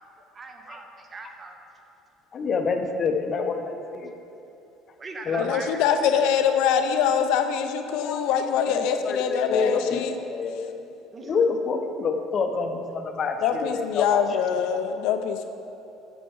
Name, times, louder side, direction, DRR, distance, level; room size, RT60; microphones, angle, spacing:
voice 1, 0.3-1.6 5.0-5.8 11.1-11.3, right 3 dB, 25° right, 4 dB, 1.0 m, -39 dB
voice 2, 2.3-4.1 5.3-5.5 8.0-8.3 8.6-10.9 11.2-14.2, left 4 dB, 35° left, 5 dB, 0.8 m, -27 dB
voice 3, 5.4-10.1 13.4-15.5, left 8 dB, 75° left, 7 dB, 0.7 m, -24 dB
8.8 x 7.4 x 5.5 m, 2.9 s
cardioid pair, 125°, 0 cm